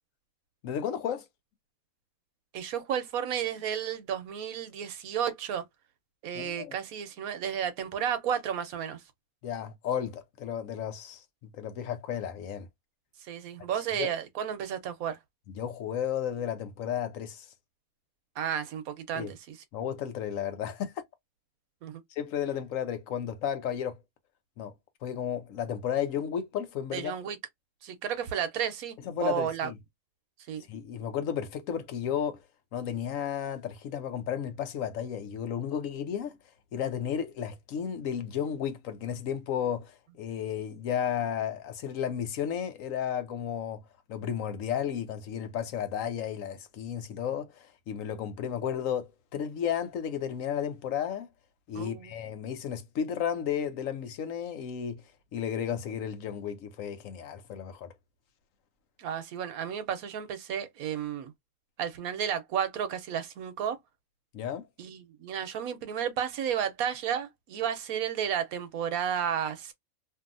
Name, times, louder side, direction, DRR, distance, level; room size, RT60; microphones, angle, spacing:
voice 1, 0.6-1.3 6.3-6.7 9.4-12.7 14.0-14.1 15.6-17.5 19.1-19.3 19.7-21.0 22.2-24.0 24.6-24.7 25.0-27.1 29.0-29.8 30.7-32.4 32.7-36.4 36.7-43.8 44.1-51.3 51.7-55.0 55.3-57.9 64.3-64.7, left 9 dB, 75° left, 1.0 m, -33 dB
voice 2, 2.5-5.6 6.2-9.0 13.2-15.2 18.4-19.6 21.8-22.0 26.9-27.4 27.8-28.9 29.2-29.7 30.5-30.6 51.7-52.1 59.0-61.3 61.8-63.8 64.8-69.7, right 8 dB, 85° right, 1.2 m, -32 dB
2.7 x 2.6 x 2.5 m
omnidirectional pair, 1.5 m